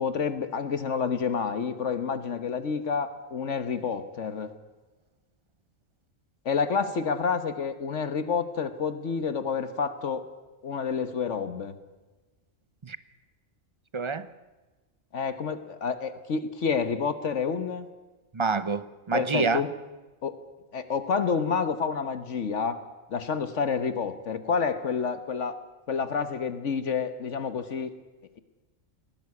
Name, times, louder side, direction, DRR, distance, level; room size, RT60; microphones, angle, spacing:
voice 1, 0.0-4.5 6.4-10.2 10.6-11.7 15.1-17.9 19.1-19.7 20.2-20.4 20.7-22.8 23.1-25.5 25.9-27.9, left 6 dB, 65° left, 1.5 m, -29 dB
voice 2, 13.9-14.3 18.3-19.6, right 4 dB, 30° right, 0.7 m, -27 dB
19.5 x 17.0 x 9.7 m
omnidirectional pair, 1.3 m